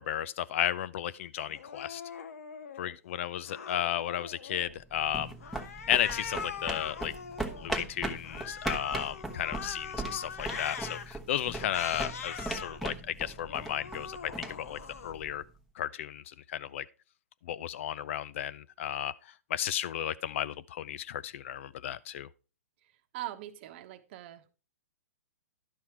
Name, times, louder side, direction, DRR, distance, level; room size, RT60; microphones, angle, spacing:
voice 1, 0.0-2.0 2.8-5.3 5.9-7.1 7.6-15.4 15.8-16.9 17.4-19.1 19.5-22.3, left 11 dB, 55° left, 0.5 m, -34 dB
Cat, 1.5-2.9 3.4-4.8 5.4-7.7 8.2-11.0 11.6-12.8 13.3-15.1, left 6 dB, 70° left, 1.1 m, -42 dB
sound 1, 4.7-15.5, right 2 dB, ahead, 1.1 m, -39 dB
voice 2, 23.1-24.5, right 15 dB, 45° right, 1.0 m, -41 dB
11.0 x 5.7 x 4.5 m
hypercardioid pair, 125°, 8 cm